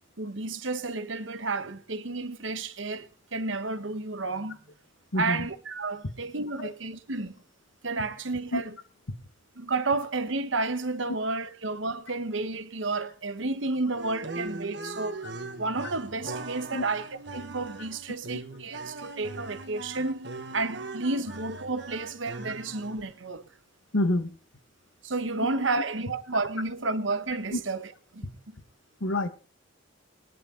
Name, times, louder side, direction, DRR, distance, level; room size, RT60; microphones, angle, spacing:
voice 1, 0.2-4.6 5.2-7.4 7.8-8.8 9.6-15.3 15.6-20.3 20.5-23.5 25.0-28.6, right 3 dB, 75° right, 1.3 m, -31 dB
voice 2, 5.1-5.5 6.6-6.7 8.5-8.6 9.1-9.2 16.7-16.8 23.9-24.3 27.5-27.6 28.2-28.3 29.0-29.3, left 1 dB, 80° left, 1.6 m, -27 dB
sound 1, 13.9-23.2, right 2 dB, 60° right, 1.6 m, -40 dB
18.5 x 11.0 x 3.9 m
head